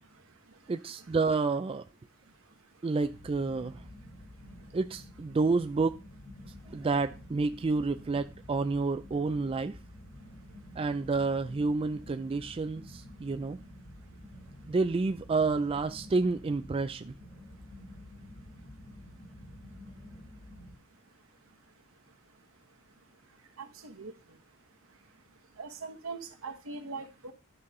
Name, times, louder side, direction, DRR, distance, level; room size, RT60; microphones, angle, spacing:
voice 1, 0.7-1.8 2.8-3.8 4.7-6.0 6.7-9.7 10.8-13.6 14.7-17.1, right 3 dB, 25° right, 0.3 m, -29 dB
sound 1, 3.0-20.8, left 1 dB, 40° left, 2.6 m, -50 dB
voice 2, 23.6-24.1 25.6-27.3, right 4 dB, 80° right, 1.4 m, -41 dB
11.0 x 5.7 x 3.8 m
head